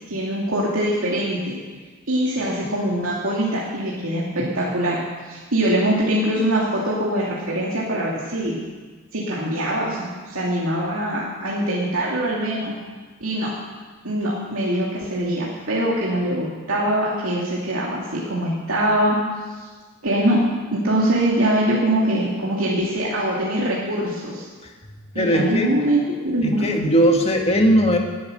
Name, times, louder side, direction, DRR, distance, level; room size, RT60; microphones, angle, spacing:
voice 1, 0.1-1.5 2.1-5.0 5.3-8.6 9.1-12.7 13.2-13.5 14.0-19.2 20.0-24.5 25.1-26.8, right 1 dB, 70° right, -5 dB, 2.7 m, -23 dB
voice 2, 25.2-25.7 26.4-28.0, equal, 30° left, 2 dB, 1.9 m, -18 dB
20.0 x 9.6 x 6.6 m, 1.4 s
head